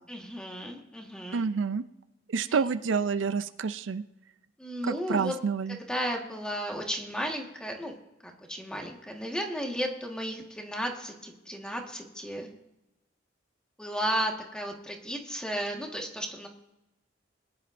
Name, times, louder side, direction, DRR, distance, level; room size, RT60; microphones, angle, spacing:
voice 1, 0.1-1.5 2.5-2.6 4.6-5.3 5.7-7.9 8.2-12.5 13.8-16.5, equal, 5° left, 1 dB, 1.5 m, -34 dB
voice 2, 1.3-1.8 2.3-4.0 4.8-5.8, right 5 dB, 75° right, 12 dB, 0.5 m, -28 dB
21.5 x 10.5 x 2.6 m, 0.95 s
head